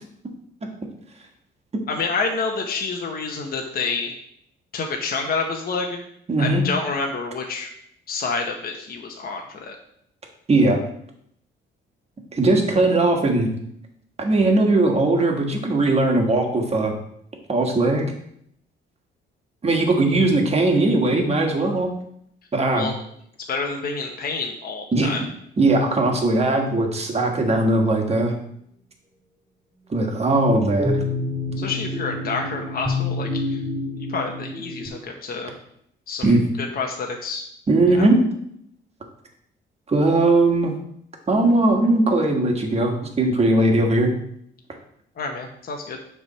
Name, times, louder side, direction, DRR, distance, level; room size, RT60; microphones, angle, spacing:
voice 1, 1.9-4.1 4.7-6.0 6.4-7.7 8.1-9.8 22.7-22.9 23.5-25.2 31.6-33.6 34.0-35.5 36.1-36.3 36.8-37.4 37.9-38.1 45.2-46.0, left 4 dB, 50° left, 2 dB, 1.0 m, -28 dB
voice 2, 6.3-6.6 10.5-10.8 12.3-13.5 14.2-16.9 17.5-18.0 19.6-21.9 22.5-22.9 24.9-25.3 25.6-28.3 29.9-31.0 36.2-36.4 37.7-38.2 39.9-40.7 41.3-44.1, right 2 dB, 30° right, 2 dB, 1.5 m, -19 dB
sound 1, 30.8-34.9, left 2 dB, 10° right, 2.3 m, -27 dB
6.9 x 3.5 x 5.5 m, 0.71 s
cardioid pair, 90°, 20 cm